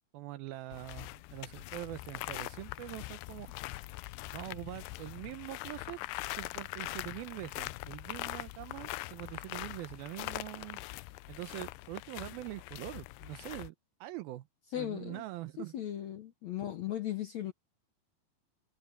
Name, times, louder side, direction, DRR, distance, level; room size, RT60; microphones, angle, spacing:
voice 1, 0.1-3.5 4.3-6.0 6.3-10.8 11.3-13.8 14.0-14.5 14.7-15.8, right 16 dB, 75° right, 2.5 m, -43 dB
sound 1, 0.7-13.7, left 20 dB, 85° left, 2.6 m, -42 dB
voice 2, 14.7-15.2 15.7-17.5, left 12 dB, 70° left, 1.8 m, -37 dB
omnidirectional pair, 4.6 m